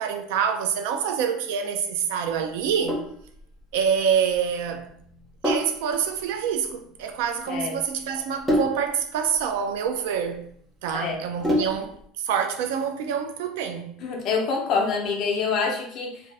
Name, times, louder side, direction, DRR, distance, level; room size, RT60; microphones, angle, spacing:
voice 1, 0.0-3.0 3.7-5.0 5.4-10.4 10.8-12.0 12.2-13.9, right 7 dB, 85° right, 0.4 m, -26 dB
Sink (filling or washing), 2.6-12.0, equal, 5° right, 0.5 m, -31 dB
voice 2, 7.5-7.8 10.9-11.2 14.0-16.2, left 5 dB, 40° left, 0.6 m, -26 dB
2.6 x 2.3 x 3.3 m
cardioid pair, 175°, 0 cm